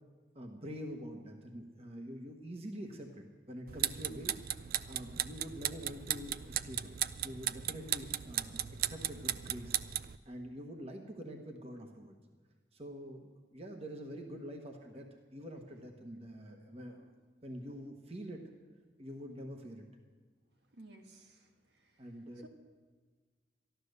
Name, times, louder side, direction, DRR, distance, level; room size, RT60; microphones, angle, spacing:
voice 1, 0.3-4.3 4.9-6.9 7.2-9.8 10.2-12.2 12.7-17.1 17.4-18.4 19.0-19.9 22.0-22.5, equal, 35° right, 3 dB, 1.1 m, -46 dB
sound 1, 3.7-10.2, right 11 dB, 55° right, 0.4 m, -37 dB
voice 2, 20.7-22.1 22.3-22.5, right 2 dB, 75° right, 3 dB, 1.5 m, -57 dB
13.5 x 11.5 x 6.6 m, 1.4 s
head